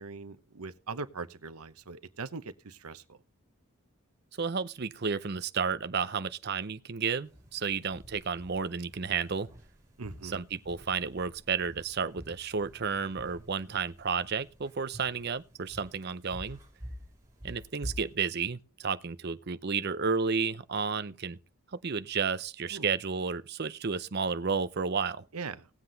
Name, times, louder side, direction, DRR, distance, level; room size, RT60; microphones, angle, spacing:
voice 1, 0.0-3.2 10.0-10.4 22.7-22.9 25.3-25.7, right 4 dB, 90° right, 0.9 m, -41 dB
voice 2, 4.4-9.5 10.2-16.6 17.4-21.4 21.8-25.3, right 5 dB, 45° right, 0.6 m, -32 dB
sound 1, 7.2-18.2, equal, 15° right, 3.1 m, -48 dB
18.0 x 7.8 x 4.0 m
head